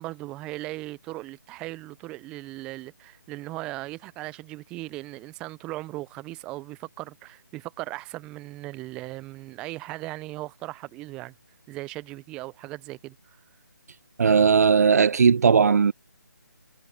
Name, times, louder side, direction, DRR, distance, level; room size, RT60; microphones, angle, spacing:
voice 1, 0.0-11.3 11.7-13.4, right 19 dB, 10° right, 0.4 m, -38 dB
voice 2, 14.2-15.9, right 6 dB, 50° right, 0.8 m, -18 dB
figure-of-eight pair, 155°, 11 cm